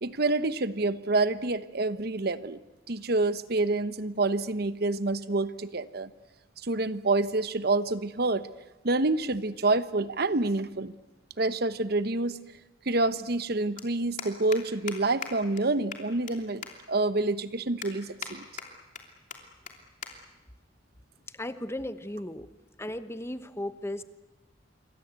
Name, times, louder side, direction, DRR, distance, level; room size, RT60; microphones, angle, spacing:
voice 1, 0.0-2.6 2.9-6.1 6.6-8.5 8.8-10.9 11.4-12.4 12.9-16.6 16.9-18.4, right 2 dB, 60° right, 14 dB, 1.0 m, -27 dB
sound 1, 13.8-13.9 14.2-14.6 14.9-15.0 15.2-15.3 15.6-15.7 15.9-16.3 16.6-16.7 17.2-17.3 17.8-18.3 18.6-19.0 19.3-19.4 19.7-19.8 20.0-20.1 20.4-20.7 21.4-21.7, left 7 dB, 45° left, 3.1 m, -38 dB
voice 2, 21.4-22.5 22.8-24.0, left 1 dB, 15° left, 12 dB, 1.0 m, -35 dB
27.0 x 23.5 x 8.2 m, 1.1 s
head